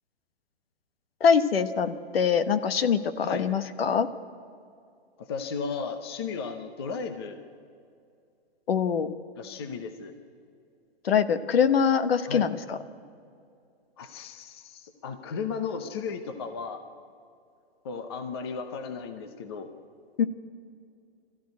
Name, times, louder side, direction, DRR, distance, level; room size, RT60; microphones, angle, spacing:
voice 1, 1.2-4.1 8.7-9.1 11.0-12.8 20.2-20.3, left 7 dB, 60° left, 12 dB, 1.2 m, -23 dB
voice 2, 5.2-7.4 9.4-10.1 12.3-12.5 14.0-16.8 17.8-19.7, left 5 dB, 25° left, 8 dB, 0.8 m, -35 dB
21.5 x 14.5 x 9.7 m, 2.4 s
hypercardioid pair, 175°, 33 cm